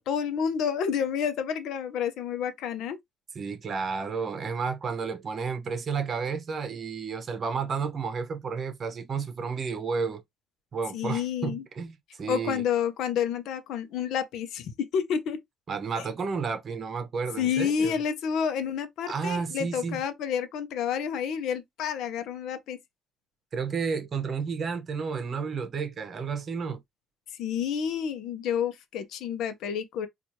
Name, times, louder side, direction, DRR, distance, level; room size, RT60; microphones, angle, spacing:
voice 1, 0.0-3.0 10.9-11.6 12.3-15.4 17.4-22.8 27.4-30.1, left 8 dB, 75° left, 0.7 m, -29 dB
voice 2, 3.3-10.2 10.7-12.6 15.7-18.0 19.1-20.0 23.5-26.8, right 5 dB, 40° right, 0.9 m, -31 dB
4.4 x 2.5 x 2.8 m
cardioid pair, 110°, 0 cm